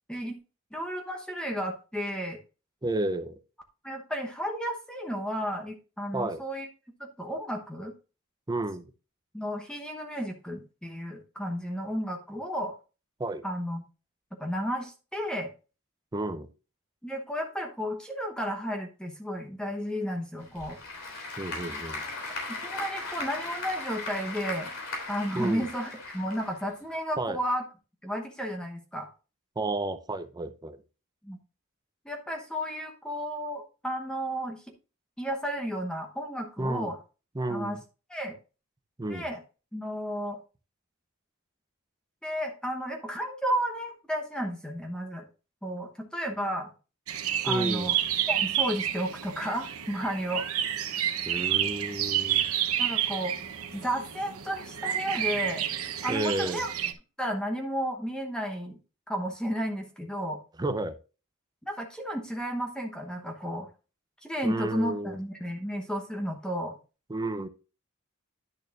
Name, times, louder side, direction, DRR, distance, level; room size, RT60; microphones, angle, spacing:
voice 1, 0.7-2.4 3.8-6.7 7.0-7.9 9.3-12.7 13.4-13.8 14.4-15.5 17.0-20.8 22.5-24.7 25.1-27.6 28.0-29.1 31.2-31.4 32.0-34.6 35.2-37.0 37.5-37.8 38.1-38.3 39.1-39.4 39.7-40.4 42.2-45.3 45.6-46.7 47.4-48.0 48.3-50.5 52.8-53.3 53.7-55.7 56.0-56.7 57.2-58.8 59.1-60.4 61.6-63.7 64.2-66.8, equal, 5° left, 2 dB, 1.0 m, -33 dB
voice 2, 2.8-3.3 6.1-6.4 8.5-8.9 13.2-13.4 16.1-16.5 21.4-22.0 25.3-25.7 27.2-27.4 29.6-30.8 36.6-36.9 37.3-37.8 39.0-39.3 47.5-47.9 51.3-52.5 56.1-56.6 60.6-60.9 64.4-65.2 67.1-67.5, right 2 dB, 20° right, 11 dB, 0.6 m, -31 dB
Applause / Crowd, 20.4-27.0, left 3 dB, 70° left, 3.4 m, -38 dB
sound 1, 47.1-56.9, right 10 dB, 80° right, 0.9 m, -30 dB
10.5 x 6.5 x 2.5 m, 0.33 s
head